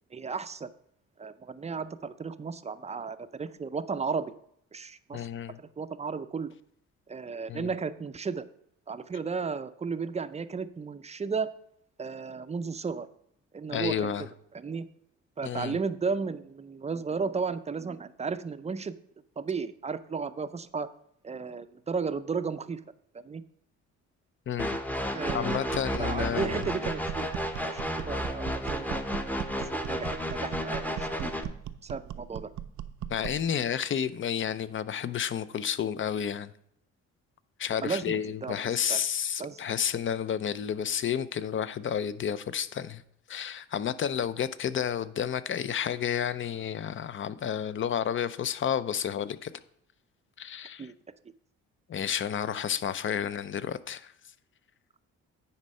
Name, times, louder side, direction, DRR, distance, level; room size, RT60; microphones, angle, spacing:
voice 1, 0.1-0.7 1.2-4.3 4.7-5.3 5.8-6.5 7.1-8.4 8.9-11.5 12.0-13.1 13.5-14.1 14.5-14.9 15.4-18.9 19.4-20.9 21.2-22.8 23.2-23.4 25.1-29.3 29.7-31.3 31.8-32.5 37.8-38.5 38.9-39.0 39.4-39.6 50.8-50.9, right 5 dB, 20° right, 0.5 m, -34 dB
voice 2, 5.1-5.6 7.5-7.7 13.7-14.3 15.4-15.8 24.5-24.8 25.3-26.7 33.1-36.5 37.6-43.0 43.3-49.5 50.4-50.9 51.9-54.1, left 8 dB, 40° left, 0.5 m, -31 dB
sound 1, 24.6-31.4, equal, 5° left, 0.8 m, -32 dB
sound 2, 25.3-33.5, right 11 dB, 70° right, 0.5 m, -40 dB
9.7 x 4.3 x 5.4 m
cardioid pair, 90°, 30 cm